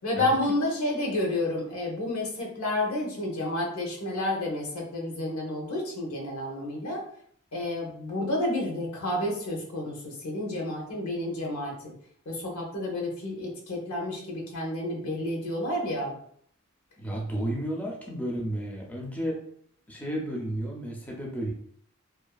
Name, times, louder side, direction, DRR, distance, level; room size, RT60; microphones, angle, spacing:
voice 1, 0.0-7.0 7.5-11.9 12.3-16.1, left 1 dB, 85° left, -2 dB, 0.8 m, -30 dB
voice 2, 17.0-19.4 19.9-21.5, right 1 dB, 5° left, -2 dB, 0.4 m, -32 dB
2.5 x 2.3 x 2.2 m, 0.62 s
head